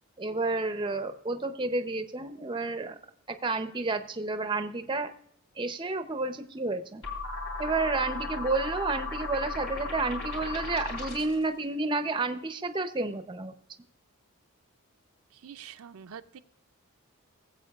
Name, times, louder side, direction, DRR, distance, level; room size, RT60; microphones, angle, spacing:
voice 1, 0.2-3.0 3.3-5.1 5.6-7.0 7.6-13.5, right 3 dB, 20° right, 9 dB, 0.5 m, -30 dB
sound 1, 7.0-11.4, left 3 dB, 65° left, 3.1 m, -36 dB
voice 2, 15.3-16.4, right 8 dB, 75° right, 9 dB, 0.5 m, -46 dB
20.0 x 7.9 x 2.3 m, 0.70 s
head